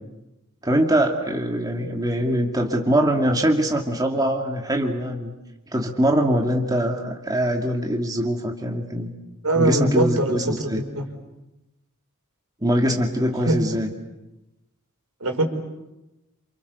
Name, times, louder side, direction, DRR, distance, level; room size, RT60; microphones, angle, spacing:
voice 1, 0.6-5.3 5.7-9.1 9.5-10.8 12.6-13.9, equal, 15° right, 1 dB, 2.4 m, -23 dB
voice 2, 9.4-11.1 13.5-13.6 15.2-15.5, right 2 dB, 75° right, 5 dB, 5.0 m, -22 dB
29.0 x 28.5 x 6.9 m, 0.97 s
head